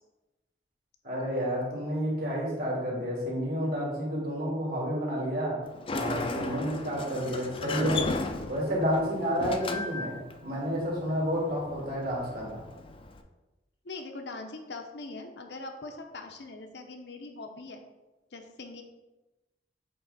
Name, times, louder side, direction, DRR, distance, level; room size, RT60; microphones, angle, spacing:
voice 1, 1.0-5.6 5.9-8.1 8.5-12.6, equal, 60° right, -3 dB, 2.1 m, -30 dB
Sliding door, 5.6-13.2, left 3 dB, 30° left, 0.5 m, -36 dB
voice 2, 13.8-17.8 18.3-18.8, left 3 dB, 70° left, 4 dB, 0.8 m, -42 dB
7.8 x 3.2 x 4.0 m, 1.1 s
head